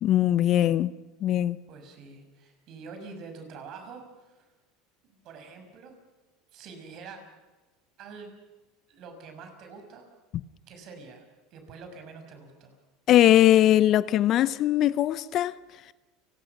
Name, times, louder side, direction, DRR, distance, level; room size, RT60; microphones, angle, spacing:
voice 1, 0.0-0.9 1.2-1.6 13.1-15.5, left 12 dB, 50° left, 0.7 m, -20 dB
voice 2, 1.7-4.5 5.0-6.0 6.5-7.2 8.0-8.3 8.9-10.1 10.7-12.8, right 4 dB, 55° right, 6.3 m, -46 dB
30.0 x 19.5 x 6.0 m
hypercardioid pair, 85°, 0 cm